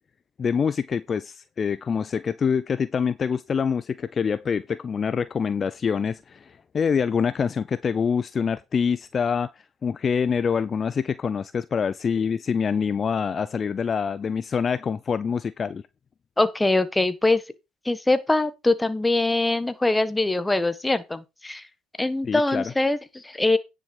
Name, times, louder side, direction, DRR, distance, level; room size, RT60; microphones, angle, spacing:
voice 1, 0.4-9.5 9.8-15.8 22.2-22.7, left 6 dB, 40° left, 0.6 m, -25 dB
voice 2, 16.4-17.4 17.8-21.6 22.0-23.6, left 2 dB, 10° left, 1.3 m, -23 dB
9.9 x 6.4 x 4.9 m
supercardioid pair, 80°, 0 cm